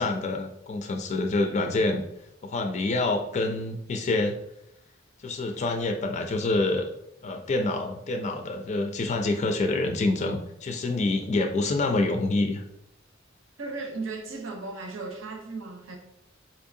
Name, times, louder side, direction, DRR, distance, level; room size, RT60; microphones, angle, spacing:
voice 1, 0.0-2.0 2.4-4.4 5.2-6.9 7.2-12.6, left 2 dB, 35° left, 0.3 m, -27 dB
voice 2, 13.6-16.0, right 3 dB, 85° right, 0.7 m, -36 dB
4.2 x 2.6 x 2.6 m
head